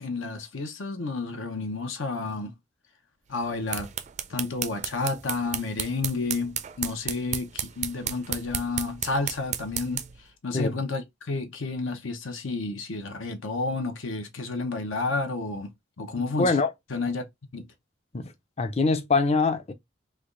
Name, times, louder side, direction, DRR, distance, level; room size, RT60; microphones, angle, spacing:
voice 1, 0.0-2.5 3.3-3.9 4.3-10.0 10.4-15.7 16.0-16.6 16.9-17.2 17.5-17.6, left 3 dB, 85° left, 0.8 m, -31 dB
sound 1, 3.4-10.2, right 9 dB, 35° right, 0.3 m, -34 dB
voice 2, 16.4-16.7 18.1-18.3 18.6-19.7, left 3 dB, 30° left, 0.4 m, -23 dB
3.3 x 2.4 x 3.7 m
head